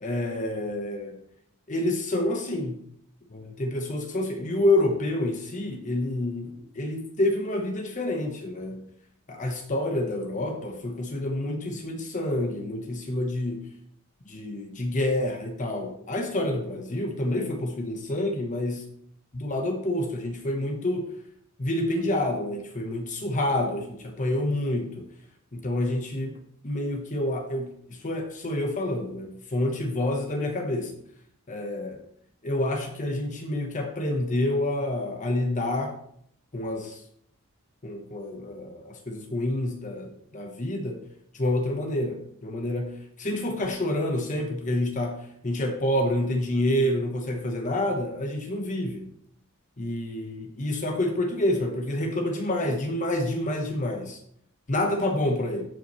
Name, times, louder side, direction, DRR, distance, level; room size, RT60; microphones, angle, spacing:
voice 1, 0.0-1.2 1.7-2.8 3.3-8.9 9.3-13.7 14.3-18.8 19.3-21.1 21.6-25.1 25.5-26.4 26.6-27.7 28.0-31.0 31.5-32.0 32.4-36.0 36.5-37.0 37.8-41.0 41.3-49.1 49.8-54.2 54.7-55.6, left 1 dB, 35° left, 4 dB, 1.0 m, -28 dB
14.0 x 5.8 x 3.1 m, 0.68 s
head